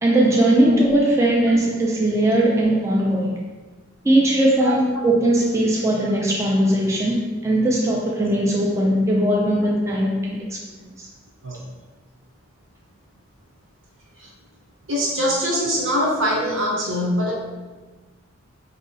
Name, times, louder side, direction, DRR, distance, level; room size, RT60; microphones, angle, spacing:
voice 1, 0.0-3.4 4.0-10.6 11.0-11.1, right 1 dB, 15° right, -3 dB, 0.3 m, -19 dB
voice 2, 14.9-17.3, equal, 70° right, -2 dB, 0.8 m, -22 dB
4.0 x 2.7 x 2.7 m, 1.3 s
head